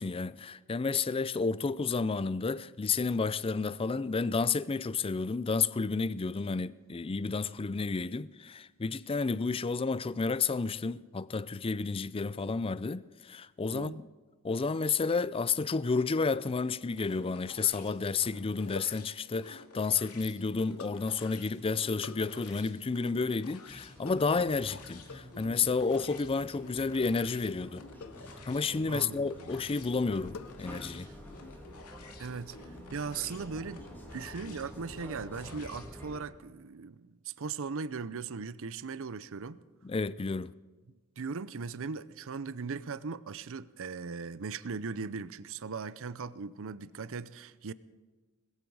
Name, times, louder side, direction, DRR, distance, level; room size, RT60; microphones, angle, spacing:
voice 1, 0.0-14.1 14.4-27.8 28.5-31.1 39.8-40.5, left 4 dB, 25° left, 0.4 m, -31 dB
sound 1, 16.9-35.9, left 3 dB, 90° left, 2.4 m, -53 dB
sound 2, 17.7-17.9 18.7-19.1 20.8-21.1 22.0-22.3 24.0-24.4 25.1-25.4 27.0-27.3 28.0-28.3 29.0-29.5 30.3-31.0 31.2-31.7, left 5 dB, 65° left, 0.6 m, -48 dB
sound 3, 23.7-36.2, equal, 10° left, 2.4 m, -49 dB
voice 2, 28.9-29.5 31.0-31.1 32.2-32.6 32.9-33.9 34.1-39.6 41.2-47.7, right 5 dB, 60° right, 0.6 m, -38 dB
20.0 x 15.0 x 4.8 m
head